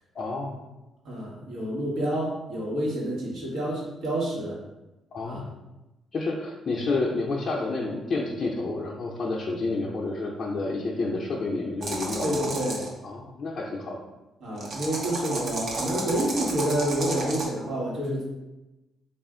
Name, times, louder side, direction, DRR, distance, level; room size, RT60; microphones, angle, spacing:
voice 1, 0.1-0.6 5.1-5.5 6.1-12.4 13.0-14.0, left 3 dB, 45° left, -3 dB, 0.5 m, -29 dB
voice 2, 1.0-4.6 5.2-5.4 12.2-12.9 14.4-18.2, right 1 dB, 75° right, -4 dB, 1.2 m, -28 dB
sound 1, 11.8-12.9 14.6-17.5, right 2 dB, 60° right, 0.8 m, -32 dB
3.4 x 2.4 x 3.7 m, 1.0 s
cardioid pair, 90°, 0 cm